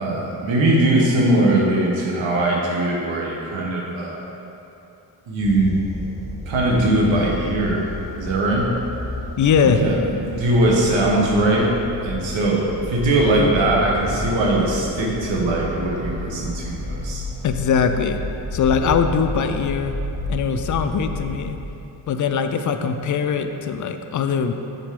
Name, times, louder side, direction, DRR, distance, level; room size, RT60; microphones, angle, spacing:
voice 1, 0.0-4.2 5.3-5.7 6.4-8.7 9.6-11.7 12.0-17.2, right 1 dB, 85° right, -3 dB, 1.3 m, -20 dB
sound 1, 5.4-21.5, left 1 dB, 5° right, 1.2 m, -32 dB
voice 2, 9.4-9.8 17.4-18.2 18.5-19.9 20.3-21.6 22.1-24.5, left 6 dB, 45° left, 7 dB, 0.4 m, -21 dB
7.7 x 4.1 x 3.7 m, 2.9 s
cardioid pair, 90°, 44 cm